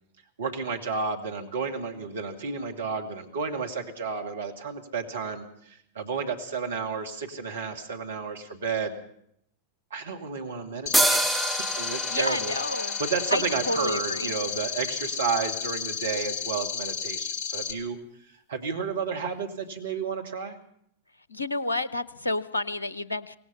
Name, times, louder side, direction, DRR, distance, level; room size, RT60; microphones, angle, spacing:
voice 1, 0.4-9.0 9.9-20.6, right 5 dB, 65° right, 4 dB, 2.3 m, -32 dB
sound 1, 10.9-17.7, left 6 dB, 45° left, 3.3 m, -32 dB
sound 2, 10.9-14.5, right 1 dB, ahead, 1.4 m, -28 dB
voice 2, 12.1-13.0 13.3-14.3 21.3-23.4, left 2 dB, 80° left, 17 dB, 1.0 m, -30 dB
24.5 x 18.5 x 5.7 m, 0.71 s
figure-of-eight pair, 90°, 0 cm